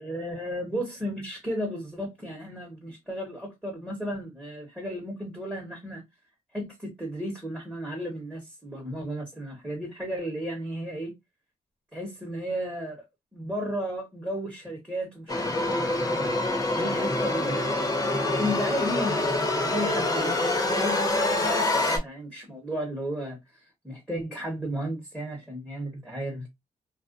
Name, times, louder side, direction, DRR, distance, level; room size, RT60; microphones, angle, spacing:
voice 1, 0.0-6.0 6.5-11.1 11.9-13.0 13.3-18.0 18.4-23.4 23.8-26.5, equal, 5° right, 1.1 m, -34 dB
sound 1, 15.3-22.0, left 2 dB, 25° left, 0.9 m, -26 dB
2.4 x 2.2 x 2.5 m
cardioid pair, 70°, 15 cm